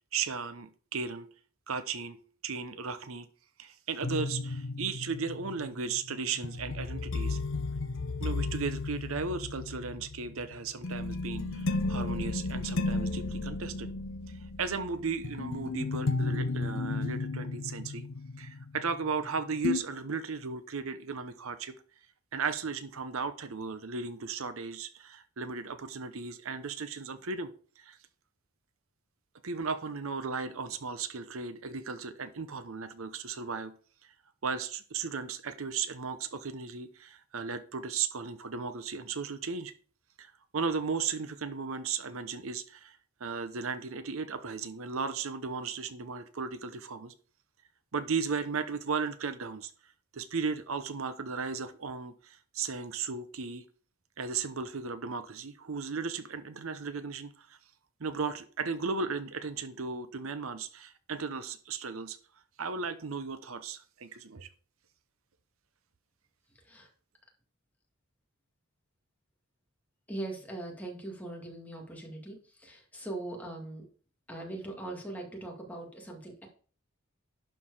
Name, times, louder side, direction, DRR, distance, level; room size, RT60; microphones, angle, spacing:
voice 1, 0.1-1.3 1.7-2.2 2.4-3.3 3.6-7.4 8.2-13.9 14.3-18.0 18.4-21.7 22.3-27.5 27.8-28.0 29.4-33.7 34.0-34.1 34.4-39.7 40.2-47.1 47.9-49.7 50.1-53.6 54.2-57.6 58.0-62.2 62.6-64.5, right 5 dB, 70° right, 11 dB, 0.8 m, -36 dB
sound 1, 4.0-19.3 19.6-19.8, left 3 dB, 65° left, 0.7 m, -34 dB
voice 2, 66.5-66.9 70.1-73.9 74.3-76.5, right 2 dB, 5° left, 0 dB, 2.0 m, -41 dB
11.5 x 4.7 x 4.8 m, 0.43 s
head